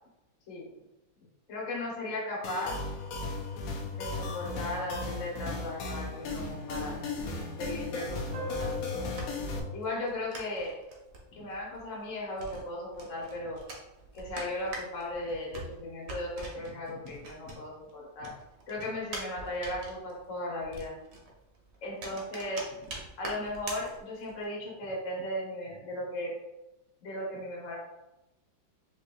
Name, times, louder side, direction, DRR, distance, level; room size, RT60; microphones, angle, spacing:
voice 1, 1.5-2.8 3.9-7.0 7.6-9.1 9.7-10.8 11.3-13.6 14.1-18.3 18.7-21.0 21.8-22.7 23.2-26.4 27.0-27.8, left 1 dB, 45° left, -3 dB, 1.3 m, -36 dB
sound 1, 2.4-9.6, left 3 dB, 70° left, 0.8 m, -36 dB
sound 2, 8.3-11.5, left 3 dB, 55° right, 0.8 m, -41 dB
sound 3, 9.2-17.9 18.2-24.5, right 2 dB, 75° right, 1.6 m, -44 dB
4.6 x 3.1 x 2.5 m, 0.95 s
omnidirectional pair, 2.1 m